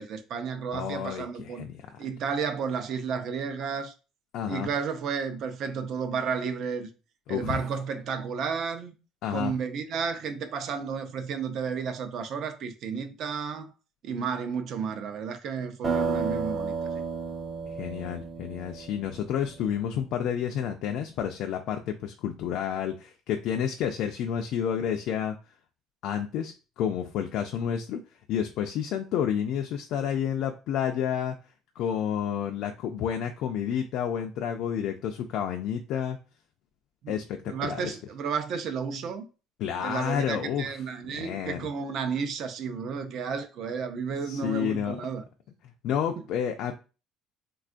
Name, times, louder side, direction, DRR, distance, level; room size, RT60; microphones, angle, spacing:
voice 1, 0.0-1.7 2.0-3.9 4.5-6.9 7.3-8.9 9.3-13.7 14.0-16.7 37.0-37.1 37.5-39.2 39.8-45.3 46.2-46.3, right 6 dB, 50° right, 0.5 m, -32 dB
voice 2, 0.7-2.0 4.3-4.7 7.3-7.6 9.2-9.5 17.7-25.4 26.0-28.0 28.3-31.4 31.8-36.2 37.1-38.0 39.6-40.7 41.1-41.7 44.2-45.0 45.8-46.7, left 9 dB, 60° left, 0.3 m, -30 dB
sound 1, 15.8-19.6, right 5 dB, 20° right, 0.8 m, -32 dB
3.5 x 2.3 x 2.5 m
cardioid pair, 150°, 0 cm